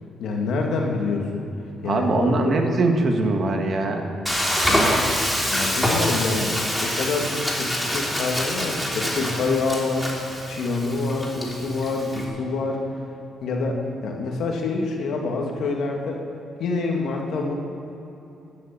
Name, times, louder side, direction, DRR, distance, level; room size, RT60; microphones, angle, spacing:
voice 1, 0.2-1.5 1.8-2.6 4.2-4.4 4.7-4.9 5.5-10.1 10.5-12.8 13.4-16.2 16.6-17.5, left 3 dB, 70° left, 0 dB, 2.5 m, -26 dB
voice 2, 1.8-4.1, right 3 dB, 50° right, 3 dB, 1.9 m, -22 dB
Frying (food), 4.3-12.3, equal, 5° left, 3.2 m, -25 dB
12.0 x 11.0 x 8.8 m, 3.0 s
cardioid pair, 90°, 0 cm